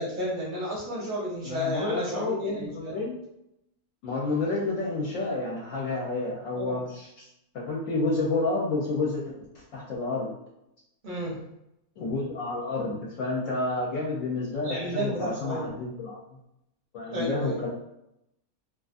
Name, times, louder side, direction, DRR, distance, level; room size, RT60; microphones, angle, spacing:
voice 1, 0.0-3.0 6.6-6.8 11.0-11.4 14.6-15.7 17.1-17.6, equal, 50° right, -4 dB, 0.6 m, -32 dB
voice 2, 1.4-3.2 4.0-7.2 7.5-9.3 9.7-10.3 12.0-16.2 16.9-17.7, left 3 dB, 70° left, -4 dB, 0.9 m, -30 dB
2.4 x 2.4 x 2.4 m, 0.84 s
omnidirectional pair, 1.5 m